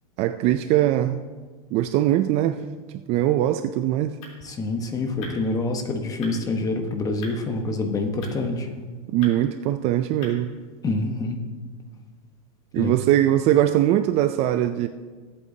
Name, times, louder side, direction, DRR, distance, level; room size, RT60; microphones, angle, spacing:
voice 1, 0.2-1.2 1.7-2.6 3.1-4.2 9.1-10.5 12.7-14.9, right 13 dB, 35° right, 10 dB, 0.4 m, -21 dB
sound 1, 3.7-10.9, left 3 dB, 65° left, 3.4 m, -48 dB
voice 2, 4.4-8.7 10.8-11.4 12.7-13.0, left 2 dB, 20° left, 5 dB, 1.2 m, -26 dB
21.0 x 8.5 x 2.8 m, 1.4 s
supercardioid pair, 145°, 19 cm